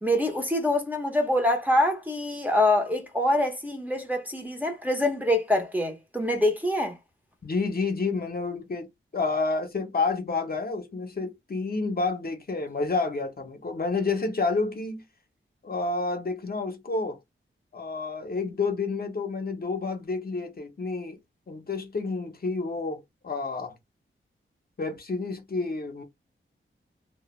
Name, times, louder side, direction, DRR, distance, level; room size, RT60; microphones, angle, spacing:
voice 1, 0.0-6.9, left 1 dB, 10° right, 0.7 m, -25 dB
voice 2, 7.4-15.0 15.6-17.2 17.7-21.2 21.5-23.7 24.8-26.0, left 3 dB, 45° left, 0.7 m, -29 dB
2.1 x 2.1 x 3.0 m
wide cardioid pair, 80°, 21 cm